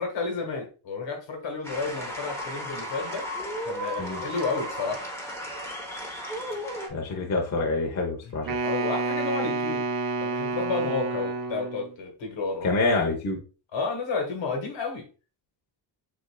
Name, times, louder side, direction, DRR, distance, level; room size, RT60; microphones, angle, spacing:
voice 1, 0.0-3.3 3.6-5.0 8.2-8.4 8.6-9.8 10.2-12.7 13.7-15.0, left 4 dB, 65° left, 1.5 m, -31 dB
sound 1, 1.6-6.9, equal, 5° left, 0.9 m, -34 dB
voice 2, 6.9-8.6 12.6-13.4, left 3 dB, 35° left, 0.8 m, -26 dB
Wind instrument woodwind instrument, 8.4-11.9, right 3 dB, 45° right, 0.7 m, -29 dB
7.8 x 2.6 x 2.3 m
wide cardioid pair, 175°, 48 cm